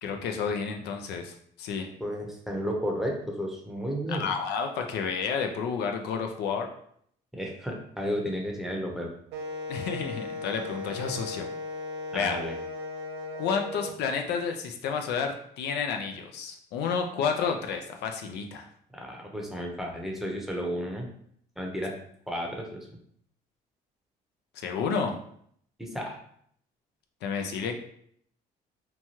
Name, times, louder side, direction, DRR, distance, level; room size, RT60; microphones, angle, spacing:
voice 1, 0.0-1.9 4.1-6.7 9.7-11.5 12.1-12.4 13.4-18.7 24.5-25.1 27.2-27.8, left 6 dB, 70° left, 4 dB, 0.4 m, -30 dB
voice 2, 2.0-4.3 7.3-9.1 12.1-12.5 18.9-21.1 21.6-21.9 22.3-22.8 25.8-26.2, equal, ahead, 0 dB, 0.7 m, -32 dB
Wind instrument woodwind instrument, 9.3-13.9, left 2 dB, 75° right, 0.5 m, -37 dB
3.0 x 2.3 x 2.8 m, 0.66 s
supercardioid pair, 80°, 18 cm